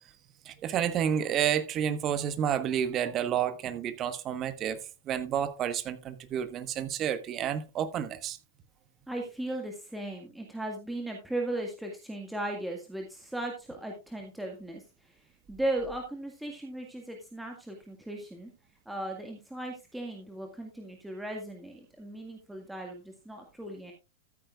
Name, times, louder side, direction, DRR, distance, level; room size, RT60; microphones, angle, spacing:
voice 1, 0.4-4.8 5.1-8.4, right 9 dB, 35° right, 1.2 m, -30 dB
voice 2, 9.1-14.8 15.5-18.5 18.9-23.9, right 1 dB, 5° right, 1.8 m, -37 dB
14.0 x 9.0 x 2.4 m
figure-of-eight pair, 100°, 0 cm